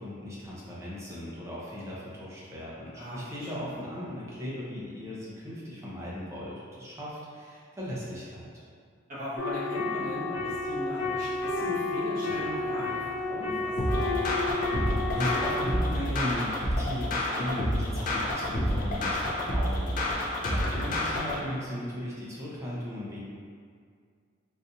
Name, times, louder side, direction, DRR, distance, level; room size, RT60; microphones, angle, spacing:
voice 1, 0.0-8.5 14.5-23.2, equal, 15° right, -7 dB, 0.7 m, -37 dB
voice 2, 2.9-3.7 9.1-14.0 20.7-20.8, equal, 45° right, -10 dB, 1.2 m, -39 dB
sound 1, 9.4-15.6, left 3 dB, 90° left, 0.8 m, -31 dB
sound 2, 13.8-21.4, left 1 dB, 40° left, 0.5 m, -29 dB
4.1 x 2.4 x 2.6 m, 2.1 s
head